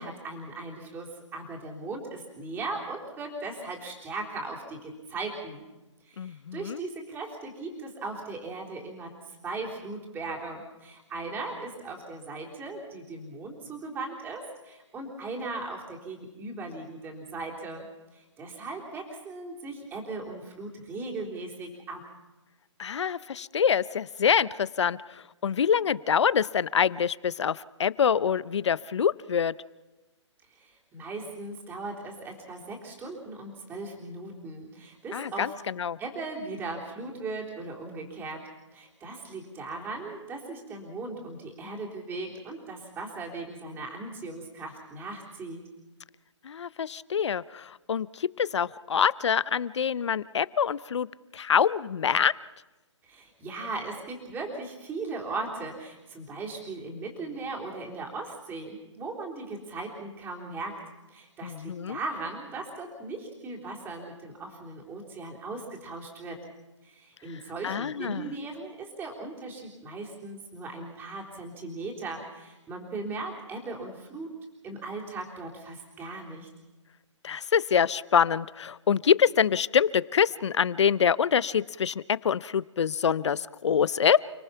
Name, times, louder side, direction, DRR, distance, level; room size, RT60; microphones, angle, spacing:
voice 1, 0.0-5.7 6.0-17.9 18.1-22.0 30.5-35.5 36.0-45.6 53.0-60.8 61.1-66.5 66.8-74.3 74.6-76.5, right 3 dB, 15° right, -1 dB, 3.7 m, -38 dB
voice 2, 6.2-6.8 22.8-29.5 35.1-36.0 46.4-51.1 51.3-52.3 61.4-62.0 67.6-68.3 77.2-84.2, left 7 dB, 65° left, 19 dB, 0.7 m, -25 dB
30.0 x 18.5 x 5.8 m, 1.1 s
hypercardioid pair, 150°, 16 cm